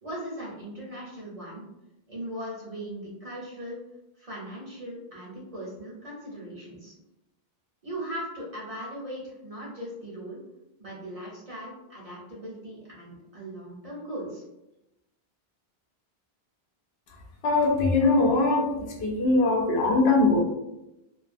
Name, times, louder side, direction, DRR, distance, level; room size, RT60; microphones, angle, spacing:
voice 1, 0.0-1.6 2.1-3.8 4.2-6.9 7.8-10.4 10.8-14.4, right 1 dB, 45° right, -5 dB, 0.6 m, -39 dB
voice 2, 17.4-20.4, left 2 dB, 80° left, -1 dB, 0.9 m, -22 dB
2.3 x 2.3 x 2.4 m, 0.92 s
omnidirectional pair, 1.1 m